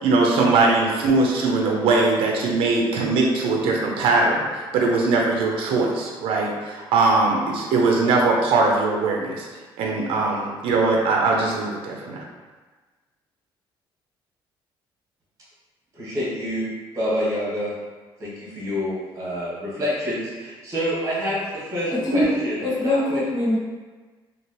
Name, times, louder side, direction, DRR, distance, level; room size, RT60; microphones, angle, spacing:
voice 1, 0.0-9.5 9.8-12.2, right 3 dB, 75° right, -1 dB, 0.5 m, -21 dB
voice 2, 15.9-16.7 16.9-17.7 18.2-23.2, equal, 35° right, -7 dB, 1.5 m, -27 dB
voice 3, 22.0-23.6, left 1 dB, 45° left, -6 dB, 1.1 m, -23 dB
2.9 x 2.8 x 3.0 m, 1.3 s
cardioid pair, 130°, 10 cm